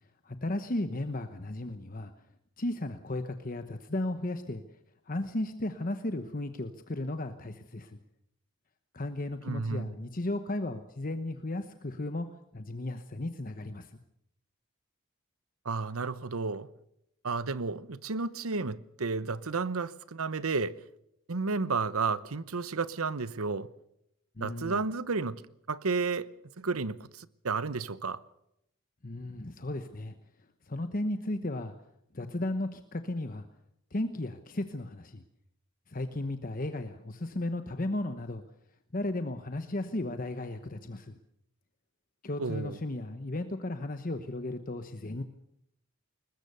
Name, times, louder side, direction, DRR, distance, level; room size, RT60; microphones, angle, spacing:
voice 1, 0.2-2.1 2.6-4.6 5.1-8.0 8.9-12.3 12.5-14.0 24.4-24.8 29.0-30.1 30.7-31.7 32.1-33.5 33.9-35.2 35.9-38.4 38.9-41.2 42.2-45.2, left 1 dB, 40° left, 1.0 m, -35 dB
voice 2, 9.4-9.9 15.6-16.7 17.2-20.8 21.3-23.7 24.4-25.4 25.7-26.3 26.6-28.2 42.4-42.8, right 4 dB, 85° right, 0.9 m, -32 dB
21.5 x 20.5 x 6.8 m
head